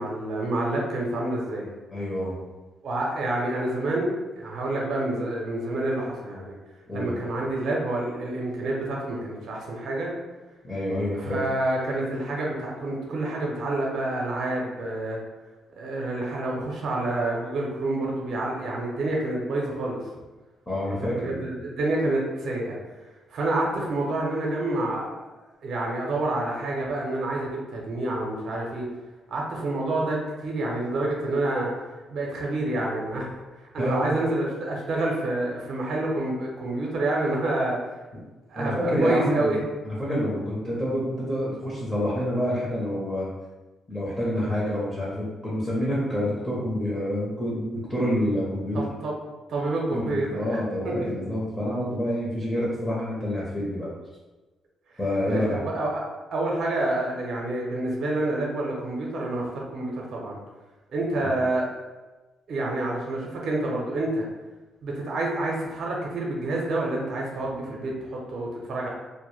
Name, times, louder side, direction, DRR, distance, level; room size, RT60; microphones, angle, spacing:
voice 1, 0.0-1.7 2.8-6.6 6.9-10.1 11.1-15.2 15.8-20.0 20.9-22.8 23.3-25.3 25.6-28.9 29.3-31.7 32.1-33.3 33.6-37.8 38.5-39.6 48.7-49.1 49.5-50.6 50.8-51.1 55.2-56.0 56.3-60.4 60.9-61.7 62.5-64.3 64.8-68.9, right 2 dB, 65° right, -2 dB, 0.6 m, -28 dB
voice 2, 1.9-2.4 6.9-7.1 10.6-11.4 20.7-21.5 33.8-34.3 38.5-39.6 39.8-43.3 43.9-48.8 49.9-53.9 55.0-55.6 61.2-61.3, equal, 20° left, -7 dB, 0.7 m, -27 dB
2.1 x 2.1 x 3.0 m, 1.2 s
cardioid pair, 90°, 0 cm